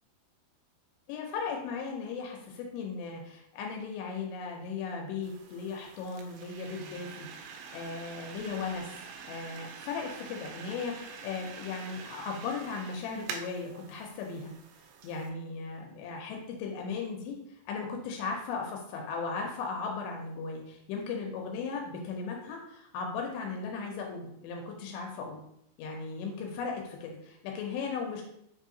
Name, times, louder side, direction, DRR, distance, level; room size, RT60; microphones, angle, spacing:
voice 1, 1.1-7.3 7.7-9.0 9.3-14.5 15.0-17.4 17.7-25.4 25.8-28.2, left 5 dB, 90° left, 1 dB, 2.7 m, -37 dB
sound 1, 5.2-15.3, right 6 dB, 90° right, 2.7 m, -46 dB
6.1 x 2.7 x 2.6 m, 0.76 s
omnidirectional pair, 4.8 m